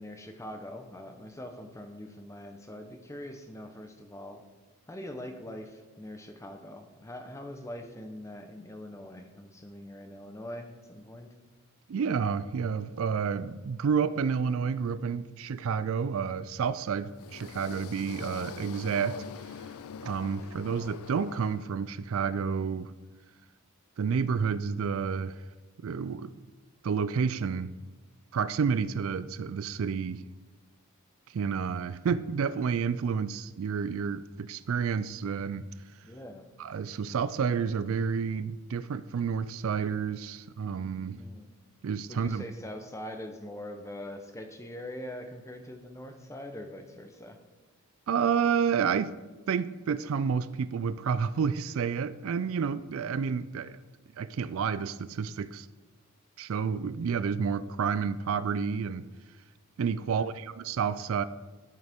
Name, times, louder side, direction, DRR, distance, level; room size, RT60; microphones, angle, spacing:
voice 1, 0.0-4.4 4.9-11.3 36.0-36.5 41.1-41.5 42.1-47.4 60.2-60.3, left 1 dB, 15° left, 5 dB, 0.7 m, -43 dB
voice 2, 11.9-19.2 20.0-22.9 24.0-25.3 25.8-26.3 26.8-27.7 28.3-30.2 31.3-35.6 36.6-41.2 41.8-42.4 48.1-49.1 49.5-53.8 54.2-55.7 56.4-59.0 59.8-61.2, right 6 dB, 65° right, 15 dB, 0.4 m, -30 dB
sound 1, 17.0-22.2, left 7 dB, 80° left, 0.4 m, -44 dB
13.0 x 6.4 x 3.6 m, 1.2 s
head